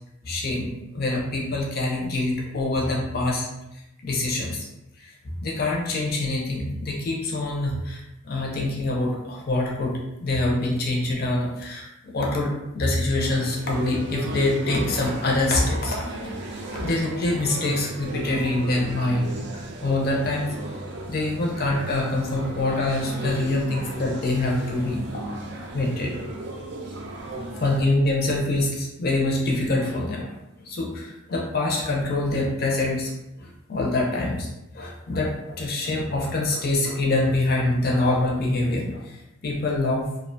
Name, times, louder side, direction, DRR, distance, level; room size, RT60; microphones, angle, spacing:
voice 1, 0.2-4.7 5.0-16.0 16.4-20.5 21.1-25.1 25.6-26.1 27.6-30.3 30.6-34.5 34.7-39.2 39.4-40.1, left 2 dB, 45° left, -1 dB, 0.5 m, -25 dB
sound 1, 13.2-27.8, right 1 dB, 55° right, 0.3 m, -35 dB
2.5 x 2.1 x 2.6 m, 0.89 s
head